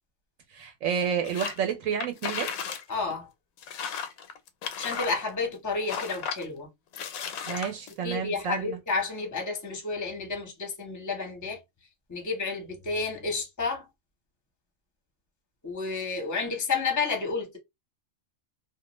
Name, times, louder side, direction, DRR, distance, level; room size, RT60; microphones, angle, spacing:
voice 1, 0.5-2.7 7.5-8.8, right 7 dB, 75° right, 1.0 m, -30 dB
sound 1, 1.2-1.6 1.9-2.8 3.1-3.2 3.6-5.5 5.9-6.4 6.9-7.9, left 7 dB, 90° left, 1.0 m, -34 dB
voice 2, 2.9-3.3 4.8-6.7 8.0-11.6 12.1-13.9 15.6-17.6, left 4 dB, 20° left, 0.6 m, -31 dB
2.4 x 2.2 x 2.9 m
omnidirectional pair, 1.4 m